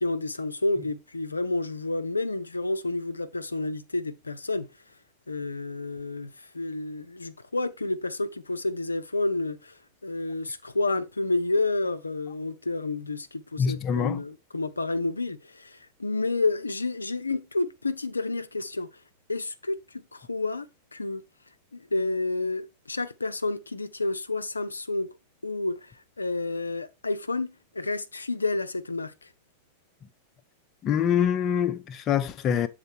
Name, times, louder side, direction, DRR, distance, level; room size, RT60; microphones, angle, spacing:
voice 1, 0.0-4.7 5.3-18.9 19.3-20.7 20.9-21.2 21.7-25.1 25.4-29.3, left 2 dB, 80° left, 0.5 m, -30 dB
voice 2, 13.6-14.2 30.8-32.7, left 8 dB, 30° left, 0.5 m, -25 dB
7.5 x 3.9 x 4.6 m
figure-of-eight pair, 90°, 0 cm